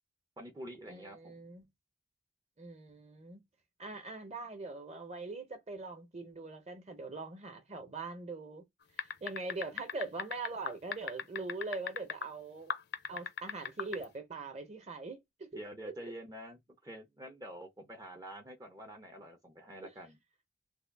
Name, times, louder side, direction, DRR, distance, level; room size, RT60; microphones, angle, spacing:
voice 1, 0.4-1.4 15.5-20.2, equal, 20° right, 0.5 m, -47 dB
voice 2, 0.9-1.6 2.6-3.4 3.8-8.6 9.0-12.7 13.1-15.5 16.0-16.1 19.8-19.9, right 3 dB, 35° right, 0.9 m, -42 dB
sound 1, 9.0-12.3 12.7-14.0, left 7 dB, 60° left, 0.5 m, -37 dB
3.4 x 2.2 x 3.4 m
head